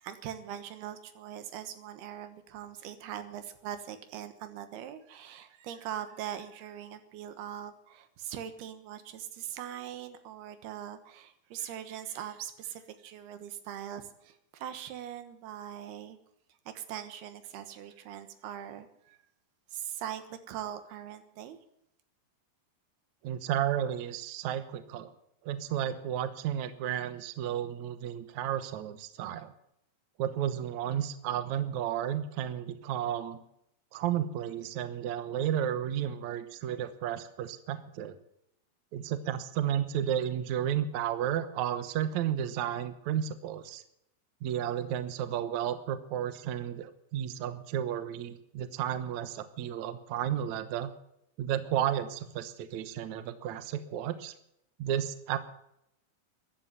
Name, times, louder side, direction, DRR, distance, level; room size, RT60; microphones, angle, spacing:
voice 1, 0.0-16.2 16.7-19.2 19.7-21.6, right 10 dB, 85° right, 10 dB, 3.3 m, -41 dB
voice 2, 23.2-25.1 25.4-29.5 30.2-33.4 33.9-38.2 38.9-43.8 44.4-50.9 51.4-54.3 54.8-55.4, right 10 dB, 65° right, 11 dB, 2.0 m, -32 dB
15.0 x 11.0 x 7.9 m, 0.76 s
omnidirectional pair, 4.4 m